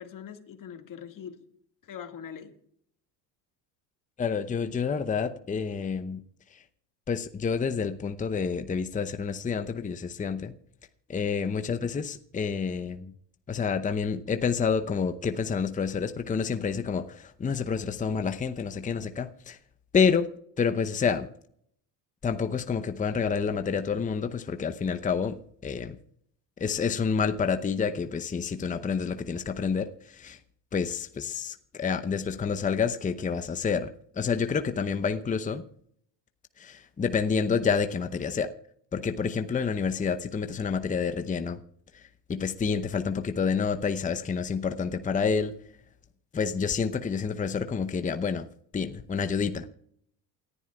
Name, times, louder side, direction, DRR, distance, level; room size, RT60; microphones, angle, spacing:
voice 1, 0.0-1.4 1.8-2.5 11.5-11.8, left 8 dB, 40° left, 2.0 m, -43 dB
voice 2, 4.2-6.2 7.1-10.5 11.1-13.1 13.5-19.6 19.9-20.3 20.6-21.3 22.2-26.0 26.6-30.4 30.7-33.9 34.2-35.6 36.6-38.5 38.9-41.6 42.3-45.5 46.3-48.5 48.7-49.7, left 6 dB, 15° left, 0.8 m, -28 dB
28.0 x 11.0 x 2.4 m
hypercardioid pair, 75°, 49 cm